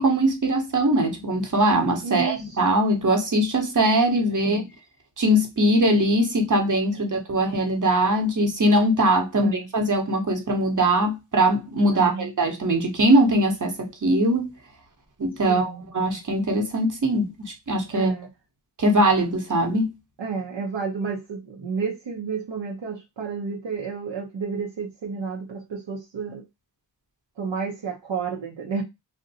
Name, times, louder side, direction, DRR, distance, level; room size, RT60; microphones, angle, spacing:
voice 1, 0.0-4.6 5.2-14.5 15.2-15.7 15.9-18.1 18.8-19.9, right 1 dB, 45° right, 1.0 m, -21 dB
voice 2, 2.0-2.6 4.4-4.7 6.9-7.2 9.3-9.7 11.9-12.3 15.5-15.9 17.9-18.3 20.2-26.4 27.4-28.8, right 5 dB, 75° right, 0.7 m, -31 dB
2.6 x 2.2 x 4.0 m
wide cardioid pair, 60°, 44 cm